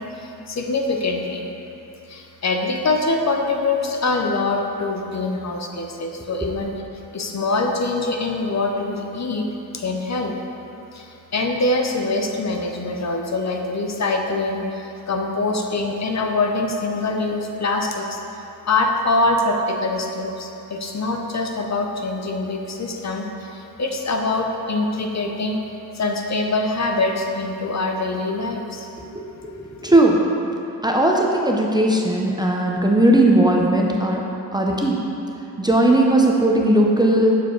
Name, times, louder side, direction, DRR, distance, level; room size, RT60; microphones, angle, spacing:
voice 1, 0.0-1.5 2.1-6.7 7.1-9.5 9.7-10.3 10.9-18.2 18.6-25.6 25.9-28.9, left 2 dB, 45° left, 2 dB, 0.7 m, -24 dB
voice 2, 29.5-30.2 30.8-34.2 34.5-35.0 35.6-37.4, right 1 dB, 10° right, -1 dB, 0.6 m, -17 dB
6.8 x 4.8 x 4.5 m, 2.9 s
cardioid pair, 80°, 40 cm